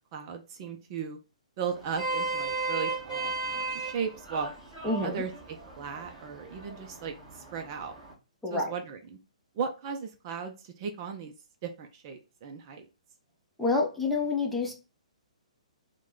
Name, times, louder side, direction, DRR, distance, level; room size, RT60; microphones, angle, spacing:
voice 1, 0.1-1.2 1.6-4.5 5.0-7.9 8.5-9.2 9.5-11.3 11.6-12.9, right 6 dB, 35° right, 5 dB, 0.5 m, -36 dB
Vehicle horn car horn honking, 1.7-8.1, right 3 dB, 15° right, 1.5 m, -36 dB
voice 2, 4.8-5.2 8.4-8.7 13.6-14.7, left 3 dB, 5° left, -1 dB, 0.7 m, -28 dB
4.7 x 2.2 x 3.7 m, 0.32 s
hypercardioid pair, 140°, 4 cm